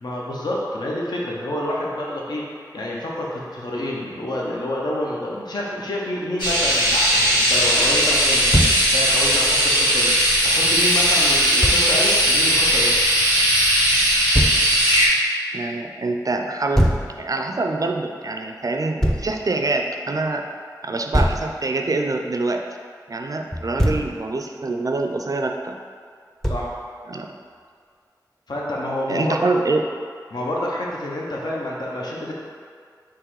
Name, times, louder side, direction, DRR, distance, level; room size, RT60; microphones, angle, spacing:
voice 1, 0.0-2.5 2.7-8.5 8.9-10.1 10.4-12.9 26.5-26.7 28.5-29.4 30.3-32.3, left 1 dB, 70° left, -4 dB, 0.7 m, -28 dB
sound 1, 6.4-15.1, equal, 85° left, 1.5 m, -18 dB
Thump thud, 8.5-8.8 11.6-11.8 14.3-14.6 16.7-17.1 19.0-19.3 21.1-21.5 23.5-24.1 26.4-26.7, equal, 5° left, 0.5 m, -20 dB
voice 2, 15.5-16.9 17.2-20.4 20.8-22.6 23.1-25.8 27.1-27.3 29.1-29.8, right 3 dB, 50° right, 3 dB, 0.4 m, -25 dB
3.7 x 3.0 x 4.6 m, 2.1 s
wide cardioid pair, 45°, 7 cm